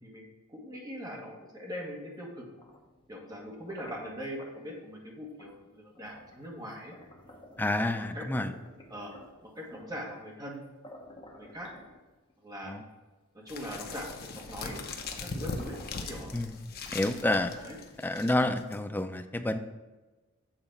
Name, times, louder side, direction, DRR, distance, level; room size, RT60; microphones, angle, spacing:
voice 1, 0.0-2.4 3.1-7.0 7.7-8.5 8.9-9.1 9.4-10.7 11.4-11.7 12.4-12.7 13.3-14.8 15.2-16.3 17.5-17.8, equal, 20° right, -1 dB, 1.4 m, -41 dB
sound 1, 2.4-4.5 5.4-5.6 5.9-8.0 8.4-10.0 10.5-10.6 10.8-12.3 13.0-13.1 13.4-14.7 15.0-16.2 16.8-17.6, left 1 dB, 25° left, 1.0 m, -53 dB
voice 2, 7.6-8.5 12.7-12.8 16.3-16.6 16.9-17.5 18.0-19.6, left 1 dB, 10° left, 7 dB, 0.4 m, -29 dB
sound 2, 13.5-18.8, left 3 dB, 45° left, 0.7 m, -40 dB
7.7 x 4.0 x 5.7 m, 1.2 s
head